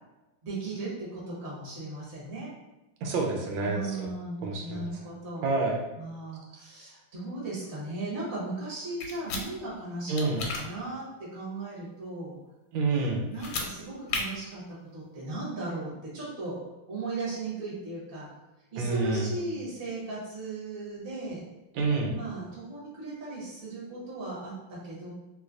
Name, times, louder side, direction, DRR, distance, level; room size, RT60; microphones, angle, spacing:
voice 1, 0.4-2.5 3.6-5.5 6.0-10.3 10.5-12.4 13.3-14.6 14.9-16.6 16.9-18.3 18.7-21.4 22.1-25.1, right 2 dB, 35° right, -6 dB, 1.1 m, -37 dB
voice 2, 3.0-4.1 4.4-4.9 5.4-5.8 10.1-10.4 12.7-13.2 18.8-19.3 21.7-22.1, right 3 dB, 90° right, 0 dB, 1.4 m, -28 dB
sound 1, 9.0-9.4 10.2-10.6 13.3-13.7 14.1-14.2, left 4 dB, 85° left, 1.4 m, -32 dB
3.1 x 3.1 x 2.4 m, 1.0 s
omnidirectional pair, 2.1 m